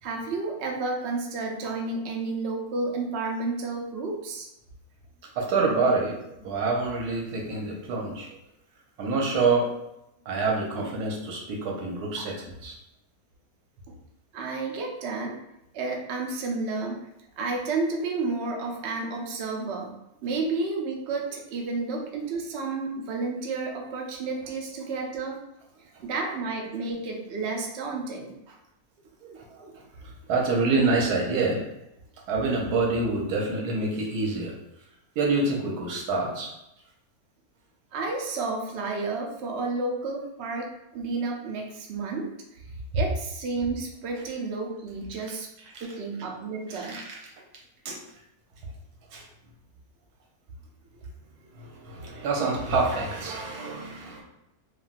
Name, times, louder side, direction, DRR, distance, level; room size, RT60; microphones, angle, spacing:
voice 1, 0.0-4.5 12.2-12.3 13.9-14.0 14.3-15.4 15.7-17.1 17.4-25.4 26.0-28.6 37.9-42.3 42.9-45.5 45.8-47.0, right 3 dB, 70° right, 1 dB, 0.6 m, -31 dB
voice 2, 5.4-8.3 9.0-9.7 10.3-12.7 29.2-29.7 30.0-31.6 32.3-34.5 35.2-36.5 46.7-47.0 47.8-48.0 49.1-49.2 51.5-54.2, right 3 dB, 85° right, -1 dB, 1.2 m, -27 dB
3.3 x 2.3 x 2.4 m, 0.85 s
omnidirectional pair, 1.6 m